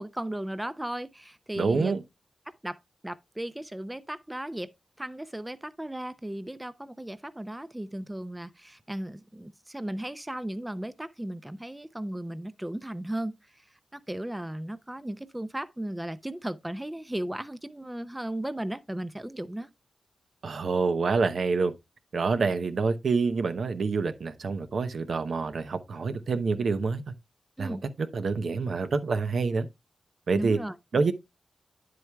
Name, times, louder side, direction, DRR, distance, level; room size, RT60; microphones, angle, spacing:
voice 1, 0.0-2.0 2.5-4.7 5.0-19.7 27.6-27.9 30.3-30.8, right 1 dB, 10° right, 0.5 m, -36 dB
voice 2, 1.6-2.0 20.4-21.7 22.1-27.1 27.6-29.7 30.3-30.6 30.9-31.1, right 4 dB, 65° right, 0.8 m, -27 dB
9.7 x 7.7 x 2.3 m
wide cardioid pair, 95°, 0 cm